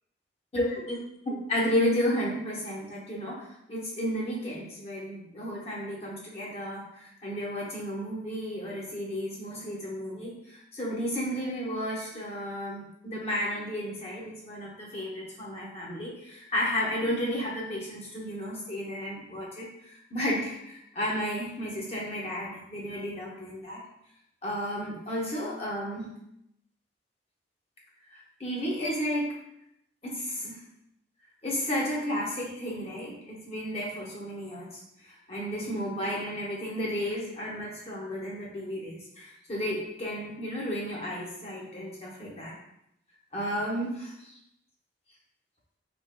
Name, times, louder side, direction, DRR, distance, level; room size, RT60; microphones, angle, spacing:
voice 1, 0.5-23.8 24.4-26.1 28.1-29.3 30.0-30.6 31.4-42.6 43.3-44.4, equal, 30° left, -4 dB, 0.7 m, -33 dB
3.3 x 2.8 x 2.2 m, 0.80 s
head